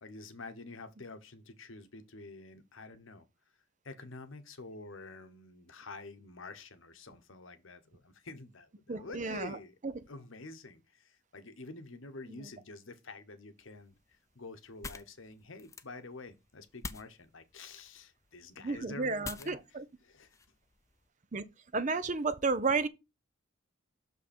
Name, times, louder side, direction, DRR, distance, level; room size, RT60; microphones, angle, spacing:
voice 1, 0.0-3.3 3.8-9.7 10.1-20.4, left 3 dB, 65° left, 1.0 m, -48 dB
voice 2, 8.9-9.6 18.6-19.8 21.3-21.4 21.7-22.9, right 4 dB, 35° right, 0.5 m, -32 dB
sound 1, 13.6-21.1, left 4 dB, 15° left, 0.3 m, -49 dB
6.3 x 5.5 x 4.3 m
head